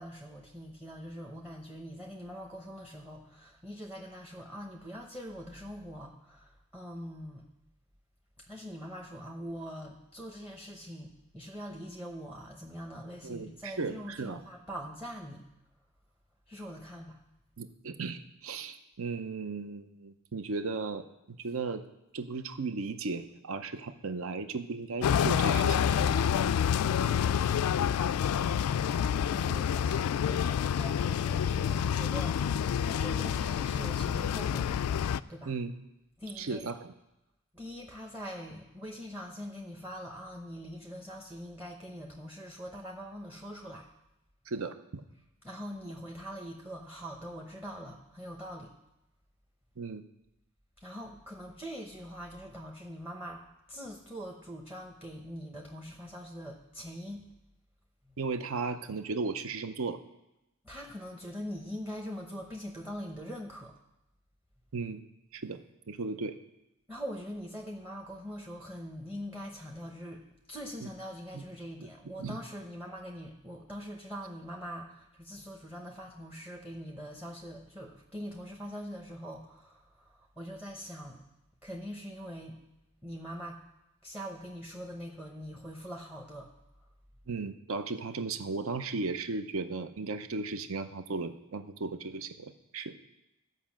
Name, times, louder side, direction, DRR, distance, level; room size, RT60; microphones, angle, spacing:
voice 1, 0.0-7.5 8.4-15.5 16.5-17.2 28.7-34.8 35.3-35.5 36.2-36.6 37.5-43.9 45.4-48.7 50.8-57.3 58.0-58.2 60.6-63.7 66.9-70.2 70.5-81.2 81.6-82.6 83.0-83.6 84.0-86.5, equal, 10° right, 1 dB, 0.9 m, -43 dB
voice 2, 13.2-14.4 17.6-21.8 22.1-26.1 35.5-35.7 36.4-36.9 44.5-45.0 49.8-50.0 58.2-60.0 64.7-65.0 65.3-65.6 65.9-66.4 71.3-71.5 72.2-72.4 87.3-92.9, right 4 dB, 65° right, 10 dB, 0.7 m, -36 dB
sound 1, 25.0-35.2, left 8 dB, 85° left, 0.3 m, -28 dB
13.5 x 5.5 x 7.4 m, 0.92 s
head